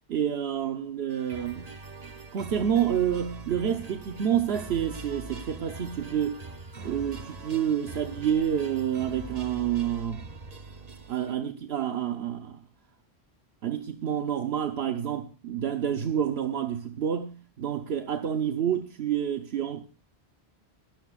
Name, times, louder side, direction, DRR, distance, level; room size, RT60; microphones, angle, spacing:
voice 1, 0.1-1.7 2.3-6.4 6.8-10.3 11.1-12.6 13.6-19.9, right 9 dB, 75° right, 1.1 m, -28 dB
sound 1, 1.1-11.3, right 3 dB, 40° right, 1.0 m, -42 dB
24.0 x 13.0 x 2.4 m
omnidirectional pair, 1.1 m